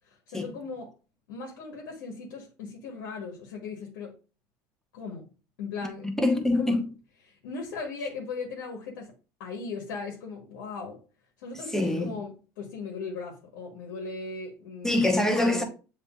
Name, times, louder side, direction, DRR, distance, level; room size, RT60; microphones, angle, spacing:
voice 1, 0.1-0.9 1.3-4.2 4.9-5.3 5.6-6.1 6.5-6.8 7.3-9.1 9.4-11.0 11.4-15.0 15.3-15.6, left 4 dB, 85° left, 1.1 m, -38 dB
voice 2, 5.8-6.9 11.7-12.1 14.8-15.6, left 1 dB, 5° left, 1.0 m, -25 dB
6.9 x 3.1 x 2.4 m
supercardioid pair, 90°, 10 cm